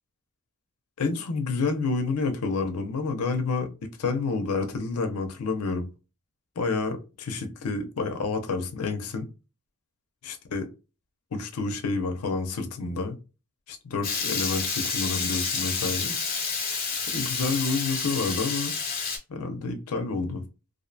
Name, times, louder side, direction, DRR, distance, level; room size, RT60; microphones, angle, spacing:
voice 1, 1.0-3.7 4.0-5.9 6.6-9.3 10.2-10.7 11.3-13.2 13.7-16.1 17.1-18.7 19.3-20.4, left 4 dB, 90° left, 0.5 m, -29 dB
Water tap faucet / Liquid, 14.0-19.2, left 5 dB, 40° left, 0.6 m, -29 dB
2.5 x 2.1 x 2.6 m
head